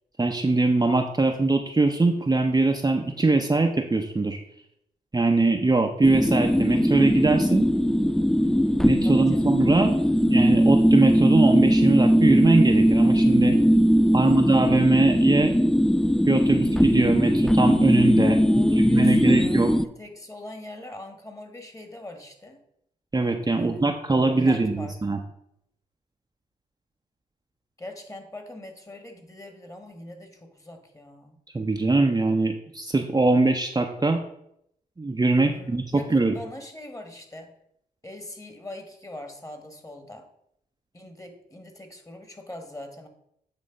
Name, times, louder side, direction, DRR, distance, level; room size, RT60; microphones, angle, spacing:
voice 1, 0.2-4.4 5.1-7.7 8.8-9.9 10.3-13.6 14.1-15.5 16.3-18.4 18.8-19.8 23.1-25.2 31.5-34.2 35.0-35.8 36.1-36.3, right 3 dB, 20° right, 3 dB, 0.7 m, -22 dB
sound 1, 6.0-19.8, equal, ahead, 0.3 m, -20 dB
voice 2, 9.0-9.7 14.0-14.8 18.4-22.6 23.6-24.9 27.8-31.4 35.5-37.6 38.0-40.3 40.9-43.1, left 1 dB, 20° left, 6 dB, 1.6 m, -42 dB
8.6 x 3.2 x 5.0 m, 0.75 s
supercardioid pair, 45°, 17 cm